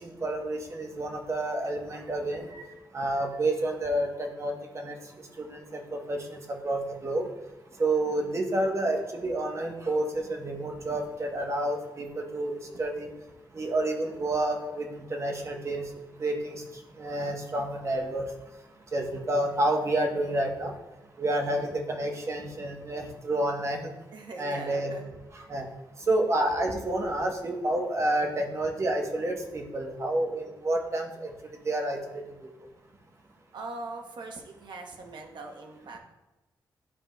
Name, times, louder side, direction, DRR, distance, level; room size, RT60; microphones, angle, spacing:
voice 1, 0.0-2.7 2.9-5.0 5.4-7.3 7.8-13.1 13.5-16.6 17.0-18.2 18.9-20.7 21.2-23.9 24.4-24.9 25.5-25.6 26.1-31.3 31.6-32.2, right 1 dB, 35° right, 2 dB, 1.0 m, -29 dB
voice 2, 21.4-21.7 24.1-25.1 33.5-36.0, right 3 dB, 70° right, 3 dB, 1.0 m, -41 dB
11.0 x 4.6 x 2.3 m, 1.1 s
wide cardioid pair, 110°, 8 cm